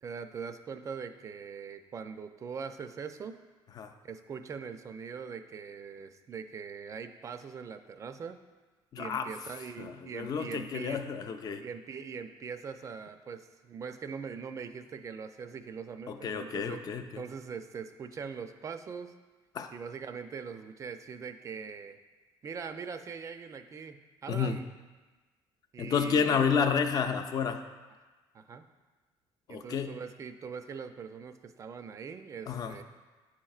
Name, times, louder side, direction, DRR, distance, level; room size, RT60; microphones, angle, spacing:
voice 1, 0.0-3.4 4.0-8.4 9.0-11.0 11.6-16.8 17.2-19.1 19.7-22.0 22.4-24.7 25.7-26.4 28.3-28.7 29.5-32.8, right 6 dB, 30° right, 9 dB, 0.4 m, -42 dB
voice 2, 8.9-9.3 9.8-11.6 16.1-17.2 19.5-19.7 24.3-24.6 25.8-27.6 29.5-29.9 32.5-32.8, left 6 dB, 40° left, 7 dB, 0.4 m, -30 dB
9.8 x 4.4 x 2.4 m, 1.3 s
cardioid pair, 130°, 10 cm